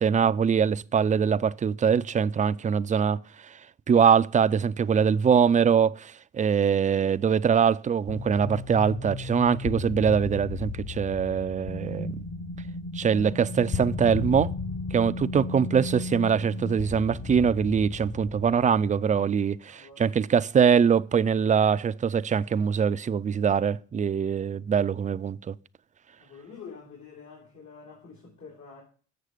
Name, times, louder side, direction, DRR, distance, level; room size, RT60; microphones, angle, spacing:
voice 1, 0.0-3.2 3.9-12.2 12.9-14.5 14.9-25.5, right 7 dB, 25° right, 0.4 m, -23 dB
sound 1, 8.1-19.4, left 4 dB, 35° left, 0.8 m, -35 dB
voice 2, 19.7-20.0 26.2-28.8, left 5 dB, 75° left, 3.6 m, -47 dB
7.9 x 6.6 x 4.9 m
cardioid pair, 90°, 30 cm